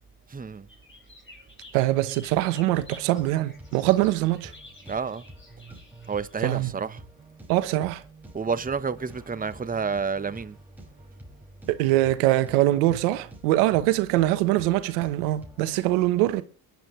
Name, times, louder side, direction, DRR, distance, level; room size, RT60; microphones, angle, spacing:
voice 1, 0.3-0.7 4.8-5.3 6.1-7.0 8.3-10.6, right 5 dB, 20° right, 1.0 m, -29 dB
sound 1, 0.7-6.6, left 2 dB, 25° left, 6.5 m, -51 dB
voice 2, 1.7-4.5 6.4-6.7 7.5-8.0 11.7-16.4, right 16 dB, 90° right, 1.1 m, -23 dB
sound 2, 2.3-15.8, right 2 dB, 5° right, 5.9 m, -48 dB
22.5 x 11.0 x 3.2 m
supercardioid pair, 70°, 44 cm